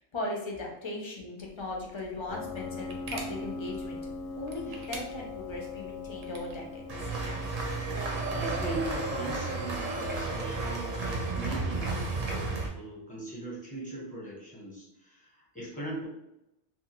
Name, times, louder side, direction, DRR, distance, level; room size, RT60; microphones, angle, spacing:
voice 1, 0.0-4.0 4.4-6.9, left 2 dB, 40° left, -1 dB, 0.4 m, -38 dB
sound 1, 1.4-6.6, right 2 dB, 85° right, 0.9 m, -47 dB
Piano, 2.3-8.8, left 3 dB, 65° left, 0.7 m, -41 dB
sound 2, 6.9-12.7, right 3 dB, 45° right, 0.5 m, -32 dB
voice 2, 8.3-16.1, right 1 dB, 10° left, -5 dB, 0.8 m, -39 dB
2.8 x 2.4 x 2.9 m, 0.84 s
omnidirectional pair, 1.1 m